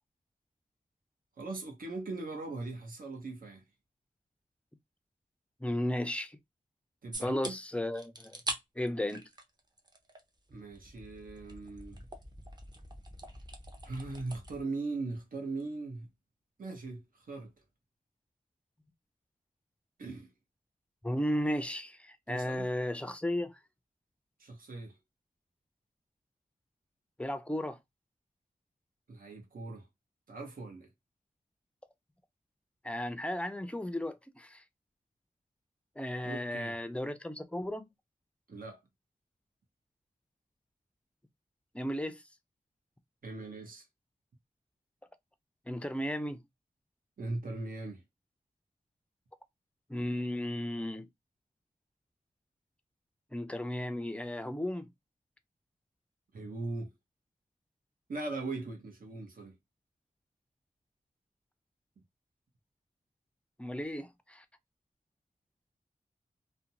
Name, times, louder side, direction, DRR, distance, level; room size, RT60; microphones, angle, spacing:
voice 1, 1.4-3.6 7.0-7.6 10.5-12.0 13.8-16.1 16.6-17.5 20.0-20.3 22.3-22.7 24.4-25.0 29.1-29.9 30.3-30.9 36.2-36.8 38.5-38.8 43.2-43.8 47.2-48.0 56.3-56.9 58.1-59.6, right 3 dB, 80° right, 0.9 m, -40 dB
voice 2, 5.6-6.4 7.2-8.4 8.8-9.3 21.0-23.6 27.2-27.8 32.8-34.6 36.0-37.9 41.7-42.2 45.7-46.4 49.9-51.1 53.3-54.9 63.6-64.4, left 1 dB, 10° left, 0.3 m, -34 dB
sound 1, 7.1-7.5 7.9-8.6 8.9-10.2 10.5-14.6, right 1 dB, 30° right, 0.6 m, -43 dB
2.5 x 2.1 x 2.8 m
wide cardioid pair, 105°, 14 cm